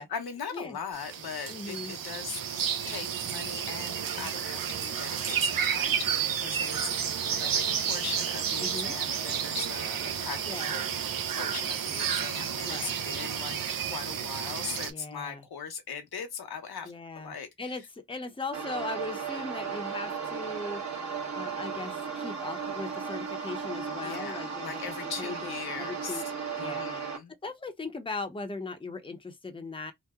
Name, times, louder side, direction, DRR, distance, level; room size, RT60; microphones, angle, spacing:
voice 1, 0.0-10.9 11.3-17.8 24.0-26.2 26.6-27.3, left 6 dB, 85° left, 0.9 m, -40 dB
sound 1, 0.9-14.9, right 8 dB, 65° right, 0.6 m, -31 dB
voice 2, 1.5-1.9 4.2-4.3 6.9-7.5 8.6-8.9 10.4-10.8 12.6-13.0 14.9-15.4 16.8-21.0 21.3-25.5 25.8-26.2 26.6-26.9 27.4-29.9, left 3 dB, 15° left, 0.7 m, -39 dB
sound 2, 18.5-27.2, right 6 dB, 45° right, 1.1 m, -35 dB
2.8 x 2.1 x 3.5 m
wide cardioid pair, 75°, 36 cm